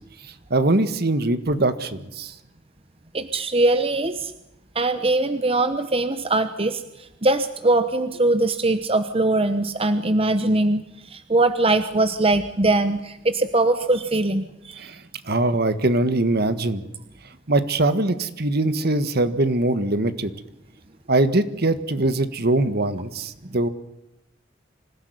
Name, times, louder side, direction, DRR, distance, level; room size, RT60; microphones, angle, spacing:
voice 1, 0.5-2.3 14.8-15.0 15.2-16.8 17.5-20.3 21.1-23.7, right 2 dB, 55° right, 12 dB, 1.7 m, -22 dB
voice 2, 3.1-4.3 4.7-14.9, right 2 dB, 30° right, 10 dB, 1.1 m, -22 dB
25.5 x 16.5 x 9.6 m, 0.89 s
head